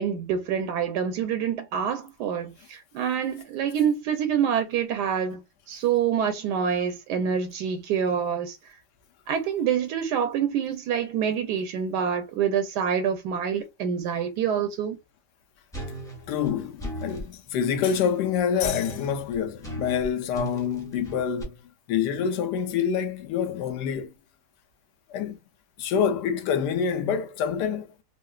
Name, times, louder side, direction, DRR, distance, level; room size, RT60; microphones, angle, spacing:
voice 1, 0.0-5.4 5.7-8.6 9.3-15.0, right 8 dB, 85° right, 1.2 m, -26 dB
sound 1, 15.7-17.3 18.6-21.4, right 1 dB, 5° left, 0.3 m, -37 dB
voice 2, 16.3-21.5 21.9-24.1 25.1-25.4 25.8-27.9, left 7 dB, 85° left, 1.2 m, -26 dB
3.7 x 2.1 x 2.3 m
omnidirectional pair, 1.8 m